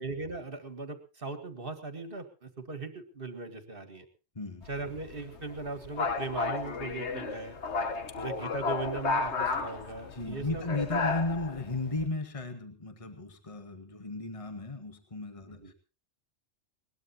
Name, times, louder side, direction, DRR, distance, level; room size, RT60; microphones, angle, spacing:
voice 1, 0.0-4.1 4.7-7.6 8.2-10.6 15.6-15.7, right 3 dB, 45° right, 9 dB, 2.1 m, -39 dB
voice 2, 4.4-4.7 8.1-8.2 10.1-15.7, left 2 dB, 25° left, 6 dB, 1.8 m, -35 dB
sound 1, 4.6-12.1, left 4 dB, 60° left, 1.5 m, -33 dB
21.0 x 19.5 x 2.9 m, 0.34 s
omnidirectional pair, 1.3 m